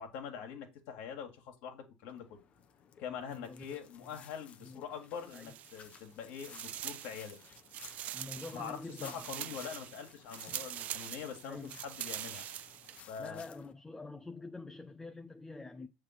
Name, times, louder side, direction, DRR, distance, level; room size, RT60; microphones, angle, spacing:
voice 1, 0.0-2.4 3.0-7.4 8.5-12.4 13.1-13.4, left 7 dB, 60° left, 1.7 m, -44 dB
sound 1, 2.1-13.7, left 8 dB, 40° left, 0.8 m, -57 dB
voice 2, 3.3-3.7 4.0-4.1 4.6-4.9 5.3-5.5 8.1-9.6 10.5-10.7 11.4-11.8 13.2-15.9, left 3 dB, 10° left, 0.5 m, -46 dB
sound 2, 5.2-6.1 6.3-13.0, right 12 dB, 45° right, 0.3 m, -44 dB
7.3 x 3.3 x 5.8 m
hypercardioid pair, 80°, 3 cm